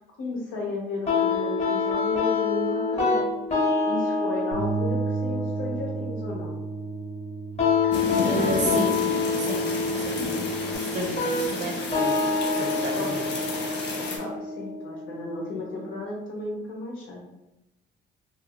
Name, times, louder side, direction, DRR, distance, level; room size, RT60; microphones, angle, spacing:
voice 1, 0.2-3.3 3.9-6.6 12.9-13.2 14.2-17.2, left 2 dB, 85° left, -2 dB, 0.9 m, -34 dB
sound 1, 1.1-16.0, left 4 dB, 35° left, 0.9 m, -27 dB
Bass guitar, 4.5-10.8, right 6 dB, 85° right, 1.0 m, -34 dB
sound 2, 7.9-14.2, left 3 dB, 60° left, 0.7 m, -31 dB
voice 2, 8.2-8.9 9.4-9.6 10.0-10.2 10.9-12.2 12.6-13.3, right 2 dB, 35° right, 1 dB, 0.7 m, -31 dB
2.7 x 2.3 x 2.9 m, 0.93 s
cardioid pair, 90°, 20 cm